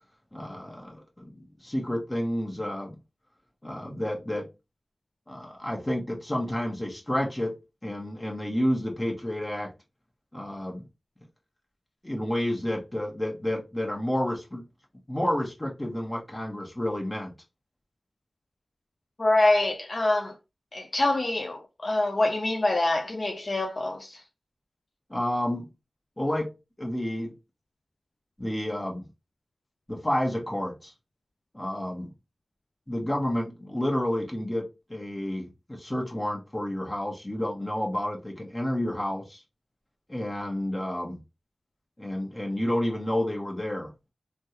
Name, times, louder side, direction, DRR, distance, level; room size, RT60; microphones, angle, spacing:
voice 1, 0.3-3.0 3.6-4.5 5.3-9.7 10.3-10.9 12.0-14.6 15.1-17.3 25.1-25.7 26.2-26.5 26.8-27.3 28.4-29.1 29.9-30.9 31.5-32.1 32.9-39.4 40.1-41.2 42.0-43.9, left 1 dB, 20° left, 1.1 m, -30 dB
voice 2, 19.2-20.3 20.7-24.2, left 2 dB, 50° left, 0.4 m, -25 dB
3.4 x 2.2 x 2.9 m
wide cardioid pair, 65°, 0 cm